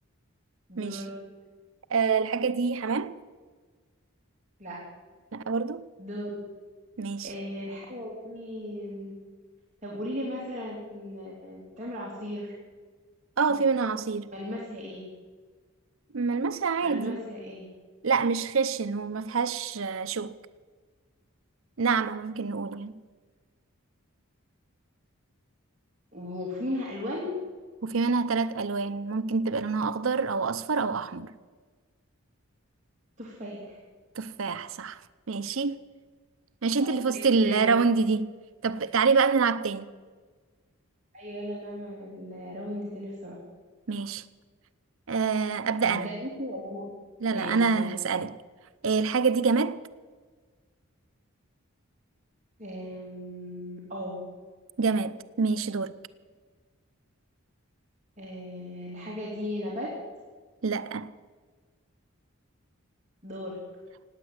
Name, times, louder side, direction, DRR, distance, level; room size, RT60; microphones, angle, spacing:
voice 1, 0.7-1.1 4.6-4.8 6.0-6.4 7.2-9.1 9.8-12.5 13.5-13.6 14.3-15.0 16.8-17.7 26.1-27.4 33.2-33.8 36.8-37.7 41.1-43.4 45.8-46.8 47.3-47.9 52.6-54.2 58.2-59.9 63.2-63.6, left 1 dB, 35° right, 2.9 m, -36 dB
voice 2, 1.9-3.2 5.3-5.9 7.0-7.3 13.4-14.3 16.1-17.2 18.0-20.4 21.8-23.0 27.8-31.3 34.2-35.0 35.3-35.8 36.6-38.3 38.6-39.9 43.9-44.3 45.1-46.1 47.2-48.4 48.8-49.8 54.8-56.0 60.6-61.1, right 5 dB, 70° right, 0.6 m, -26 dB
17.5 x 9.2 x 8.0 m
head